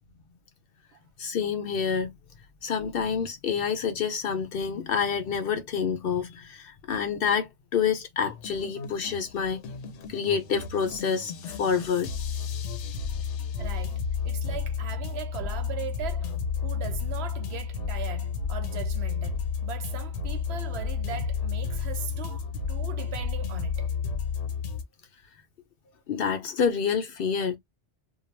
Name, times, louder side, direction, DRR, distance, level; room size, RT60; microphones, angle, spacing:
voice 1, 1.2-2.1 2.6-9.6 10.1-12.1 26.1-27.6, left 6 dB, 60° left, 0.6 m, -28 dB
sound 1, 8.2-24.8, left 6 dB, 85° left, 1.0 m, -32 dB
voice 2, 13.6-23.9, right 9 dB, 70° right, 0.8 m, -39 dB
2.3 x 2.0 x 3.0 m
omnidirectional pair, 1.2 m